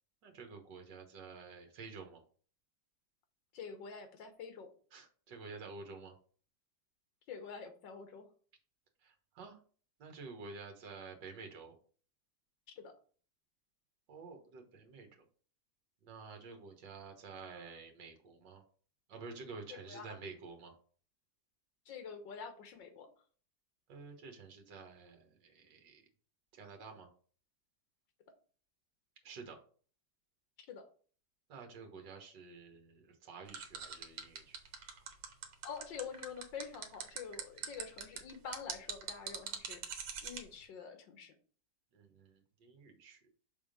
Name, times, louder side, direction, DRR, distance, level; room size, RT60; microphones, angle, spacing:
voice 1, 0.2-2.2 4.9-6.1 9.0-9.6 10.0-11.7 14.1-15.1 16.0-18.6 19.1-20.8 23.9-26.0 26.5-27.1 29.2-29.6 31.5-34.6 41.9-43.2, right 4 dB, 70° right, 4 dB, 1.9 m, -50 dB
voice 2, 3.5-4.7 7.3-8.3 12.7-12.9 19.7-20.2 21.9-23.1 30.7-30.9 35.6-41.3, left 6 dB, 75° left, 7 dB, 1.7 m, -47 dB
sound 1, 33.5-40.4, right 7 dB, 85° right, 1.7 m, -42 dB
6.0 x 3.6 x 5.1 m, 0.43 s
omnidirectional pair, 2.0 m